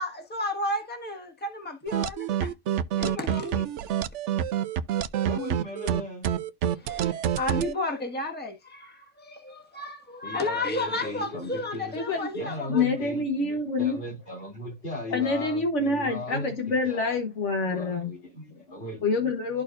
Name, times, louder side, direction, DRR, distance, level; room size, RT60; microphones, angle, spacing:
voice 1, 0.0-2.5 2.9-3.7 6.7-12.8, left 2 dB, 10° left, 1.4 m, -32 dB
sound 1, 1.9-7.7, right 10 dB, 80° right, 0.9 m, -27 dB
voice 2, 5.2-6.3 10.2-11.9 12.3-17.2 17.7-19.0, left 1 dB, 55° left, 4.0 m, -37 dB
voice 3, 11.9-12.3 12.7-13.9 15.1-18.1 19.0-19.6, left 3 dB, 80° left, 1.5 m, -26 dB
13.0 x 4.4 x 2.6 m
omnidirectional pair, 1.2 m